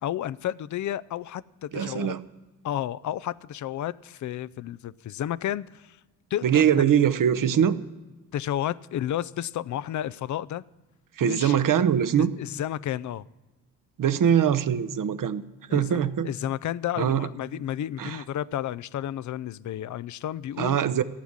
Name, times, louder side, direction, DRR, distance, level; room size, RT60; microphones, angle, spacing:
voice 1, 0.0-2.2 2.6-6.0 6.3-6.7 8.3-10.6 11.2-11.6 12.2-13.2 15.7-20.8, left 11 dB, 45° left, 19 dB, 0.6 m, -32 dB
voice 2, 1.7-2.2 6.4-7.8 11.2-12.3 14.0-15.4 15.7-16.3 17.0-17.3 18.0-18.2 20.6-21.0, right 9 dB, 50° right, 12 dB, 1.0 m, -22 dB
15.5 x 7.1 x 9.7 m, 1.1 s
hypercardioid pair, 55°, 42 cm